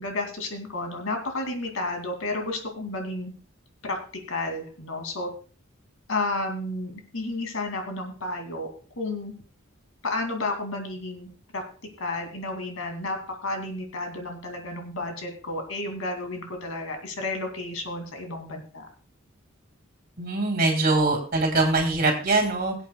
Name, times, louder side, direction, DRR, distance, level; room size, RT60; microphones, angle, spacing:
voice 1, 0.0-3.3 3.8-4.0 4.3-5.3 6.1-8.7 9.0-9.3 10.0-11.3 11.5-11.6 12.0-18.9, left 2 dB, 80° left, 3 dB, 2.5 m, -31 dB
voice 2, 20.2-22.7, right 2 dB, 45° right, 2 dB, 2.7 m, -23 dB
22.5 x 8.0 x 2.3 m, 0.38 s
head